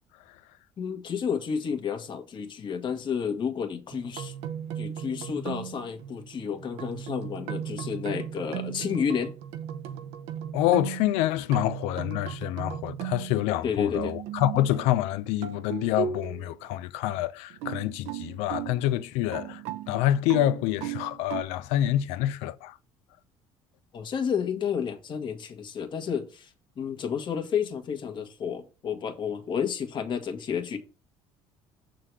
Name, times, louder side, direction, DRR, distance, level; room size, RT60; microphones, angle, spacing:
voice 1, 0.8-4.3 4.7-9.3 13.6-14.1 23.9-30.8, left 7 dB, 45° left, 1.5 m, -31 dB
sound 1, 3.9-13.6 13.9-15.1 15.4-16.6 17.5-21.4, right 10 dB, 80° right, 0.7 m, -37 dB
voice 2, 10.5-22.8, left 13 dB, 80° left, 0.6 m, -27 dB
6.6 x 3.8 x 6.1 m
supercardioid pair, 90°, 11 cm